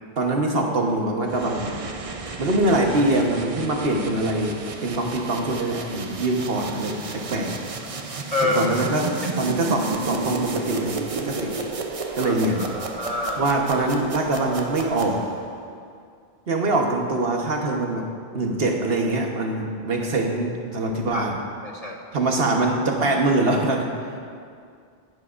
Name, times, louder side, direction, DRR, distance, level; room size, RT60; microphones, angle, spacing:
voice 1, 0.2-1.7 2.4-7.6 8.4-9.1 9.4-11.6 12.1-12.7 13.4-15.3 16.5-18.1 18.3-21.4 22.1-24.1, right 2 dB, 65° right, 1 dB, 1.4 m, -23 dB
sound 1, 1.3-15.6, right 3 dB, 40° right, 0.6 m, -33 dB
voice 2, 12.2-13.4 21.1-21.3 21.6-22.0, left 2 dB, 40° left, 0 dB, 0.8 m, -27 dB
17.5 x 10.5 x 2.5 m, 2.2 s
omnidirectional pair, 1.1 m